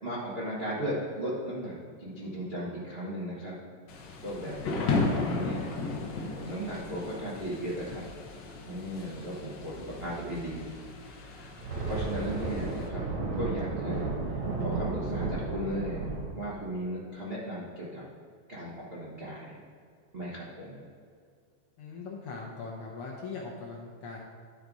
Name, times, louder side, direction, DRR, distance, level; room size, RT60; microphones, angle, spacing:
voice 1, 0.0-3.6 4.2-5.7 6.3-8.0 8.6-10.7 11.2-11.3 11.8-14.1 14.3-18.0 18.5-19.6 20.1-20.8, equal, 85° right, -7 dB, 0.5 m, -36 dB
Thunder / Rain, 3.9-12.9, left 3 dB, 90° left, 0.9 m, -35 dB
sound 1, 5.9-7.6 11.4-16.3, right 3 dB, 65° right, 2.5 m, -34 dB
voice 2, 21.8-24.2, left 4 dB, 70° left, -2 dB, 1.4 m, -40 dB
11.0 x 3.9 x 4.7 m, 2.2 s
omnidirectional pair, 3.3 m